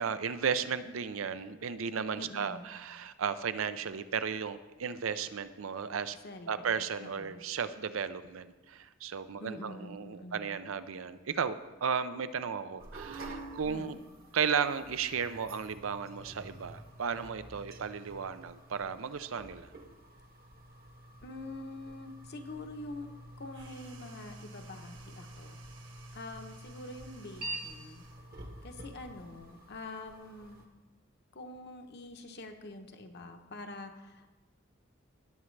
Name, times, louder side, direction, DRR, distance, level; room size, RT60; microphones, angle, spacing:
voice 1, 0.0-6.2 6.5-14.0 14.3-19.7, right 6 dB, 85° right, 12 dB, 0.5 m, -34 dB
voice 2, 2.1-2.6 6.2-7.4 9.4-10.6 13.6-14.0 21.2-23.1 23.4-25.6 26.1-28.0 28.6-30.6 31.3-34.3, left 2 dB, 55° left, 5 dB, 0.9 m, -45 dB
sound 1, 12.8-30.6, right 2 dB, 50° right, 1.2 m, -48 dB
sound 2, 23.5-28.3, right 5 dB, 70° right, 1.3 m, -58 dB
18.0 x 7.1 x 3.3 m, 1.2 s
head